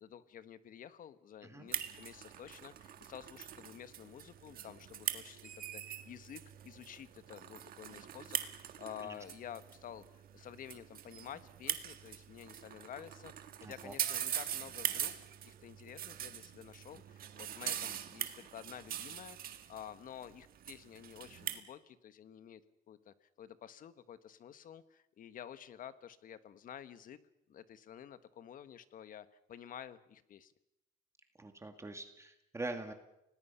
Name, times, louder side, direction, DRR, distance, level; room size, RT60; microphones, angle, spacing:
voice 1, 0.0-15.1 15.4-22.6 22.9-27.2 27.5-30.5, left 9 dB, 55° left, 13 dB, 1.3 m, -51 dB
sound 1, 1.7-21.6, right 10 dB, 60° right, 1.7 m, -42 dB
voice 2, 13.6-13.9 31.4-32.9, right 2 dB, 15° right, 5 dB, 2.2 m, -43 dB
30.0 x 19.0 x 5.7 m, 0.87 s
cardioid pair, 110°, 17 cm